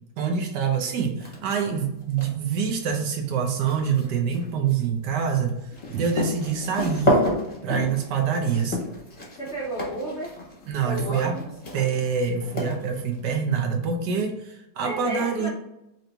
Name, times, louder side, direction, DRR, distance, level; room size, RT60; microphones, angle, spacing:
voice 1, 0.2-5.6 5.9-7.2 7.6-8.8 10.7-11.4 11.7-15.5, right 6 dB, 70° right, 3 dB, 1.2 m, -25 dB
sound 1, 1.2-1.7 2.0-13.2, left 1 dB, 30° left, 0.8 m, -30 dB
voice 2, 9.4-10.4 10.8-11.5 14.8-15.5, right 1 dB, 65° left, -3 dB, 0.6 m, -32 dB
3.8 x 2.9 x 3.3 m, 0.87 s
omnidirectional pair, 2.0 m